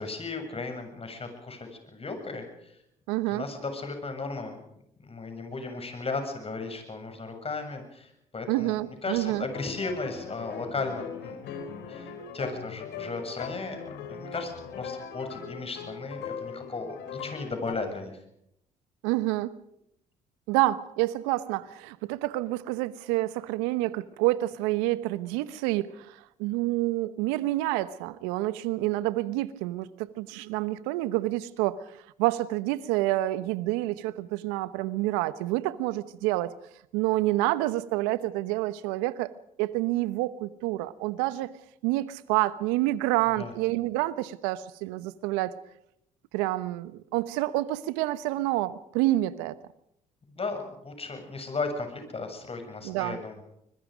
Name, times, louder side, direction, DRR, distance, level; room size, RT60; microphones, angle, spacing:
voice 1, 0.0-2.7 3.3-4.6 5.0-8.8 9.0-11.4 11.9-13.8 14.1-14.5 14.8-18.2 43.4-43.5 50.3-53.4, left 3 dB, 30° left, 6 dB, 7.4 m, -35 dB
voice 2, 3.1-3.4 8.5-9.5 19.0-19.5 20.5-31.8 32.2-36.5 36.9-39.3 39.6-41.5 41.8-45.5 46.3-49.6 52.8-53.2, right 17 dB, 80° right, 16 dB, 1.1 m, -28 dB
sound 1, 9.4-17.7, left 7 dB, 70° left, 3.9 m, -40 dB
25.5 x 21.5 x 5.2 m, 0.77 s
hypercardioid pair, 60°, 18 cm